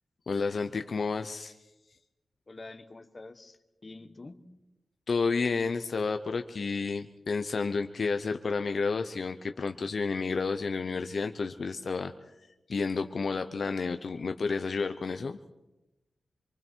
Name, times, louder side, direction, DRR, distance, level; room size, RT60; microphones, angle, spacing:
voice 1, 0.3-1.5 5.1-12.1 12.7-15.4, left 4 dB, 55° left, 7 dB, 0.9 m, -31 dB
voice 2, 2.5-4.6, left 2 dB, 30° left, 8 dB, 1.4 m, -47 dB
27.0 x 24.0 x 4.6 m, 0.97 s
wide cardioid pair, 135°, 0 cm